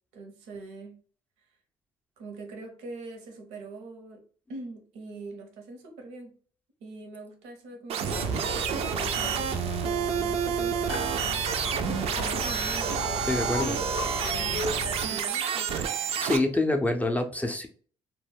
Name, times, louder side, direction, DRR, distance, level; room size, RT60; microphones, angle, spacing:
voice 1, 0.1-1.0 1.4-1.5 2.2-4.2 4.5-6.3 6.8-13.1 15.0-16.3, right 3 dB, 80° right, 3 dB, 0.7 m, -43 dB
sound 1, 7.9-16.4, right 8 dB, 60° right, 0.4 m, -29 dB
sound 2, 8.1-15.1, left 3 dB, 85° left, 0.5 m, -35 dB
voice 2, 13.2-13.8 16.2-17.7, left 2 dB, 10° left, 4 dB, 0.4 m, -26 dB
2.2 x 2.0 x 3.3 m, 0.43 s
supercardioid pair, 70°, 12 cm